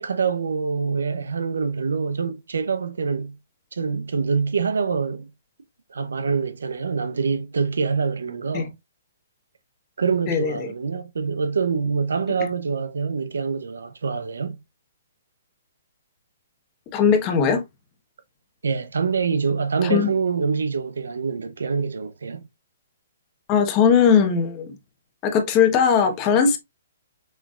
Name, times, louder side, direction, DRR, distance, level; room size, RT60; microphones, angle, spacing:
voice 1, 0.0-3.4 3.7-5.3 5.9-8.7 10.0-14.6 18.6-22.4, right 5 dB, 85° right, 0.8 m, -25 dB
voice 2, 10.3-10.7 16.9-17.6 19.8-20.1 23.5-24.8 25.2-26.6, left 6 dB, 25° left, 1.2 m, -19 dB
6.5 x 3.3 x 2.4 m
hypercardioid pair, 150°, 0 cm